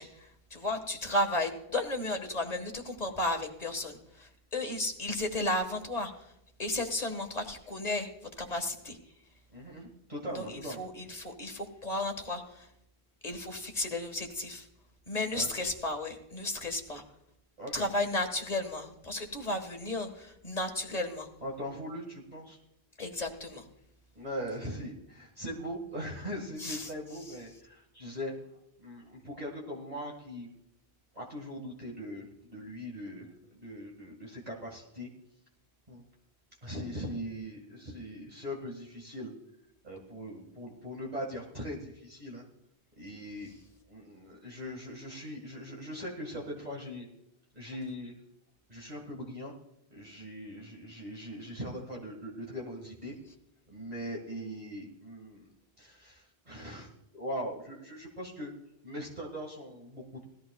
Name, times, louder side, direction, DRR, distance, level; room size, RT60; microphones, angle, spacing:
voice 1, 0.0-6.3 6.6-8.1 8.4-9.0 10.3-12.7 13.2-14.7 15.1-17.0 17.7-21.3 23.0-23.6 26.6-26.9, left 2 dB, 40° left, 5 dB, 1.6 m, -34 dB
voice 2, 9.5-10.9 15.3-15.5 17.6-17.8 21.4-22.6 24.2-28.3 28.8-30.5 31.1-35.1 35.9-36.0 36.6-39.3 39.8-42.5 43.0-43.5 43.9-47.1 47.5-48.2 48.7-49.5 49.9-53.1 53.7-55.5 55.8-58.5 58.8-60.2, equal, 40° right, -2 dB, 1.9 m, -40 dB
19.0 x 14.0 x 2.3 m, 0.83 s
omnidirectional pair, 1.1 m